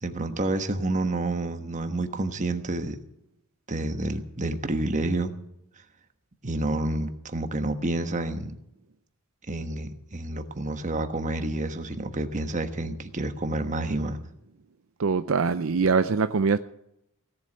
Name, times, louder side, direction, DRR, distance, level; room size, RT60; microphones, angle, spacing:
voice 1, 0.0-3.0 3.7-5.3 6.4-8.5 9.5-14.2, right 2 dB, 35° right, 1.3 m, -29 dB
voice 2, 15.0-16.6, right 5 dB, 65° right, 0.5 m, -23 dB
17.0 x 7.7 x 8.9 m
head